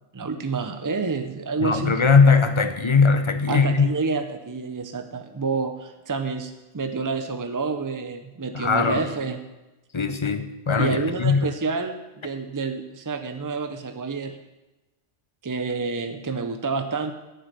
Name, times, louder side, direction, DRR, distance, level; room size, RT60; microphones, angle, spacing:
voice 1, 0.1-2.0 3.5-9.4 10.8-14.4 15.4-17.1, right 4 dB, 35° right, 7 dB, 0.3 m, -28 dB
voice 2, 1.6-3.9 8.5-9.0 9.9-11.5, left 5 dB, 30° left, 9 dB, 0.6 m, -20 dB
9.4 x 7.6 x 6.6 m, 1.0 s
omnidirectional pair, 1.3 m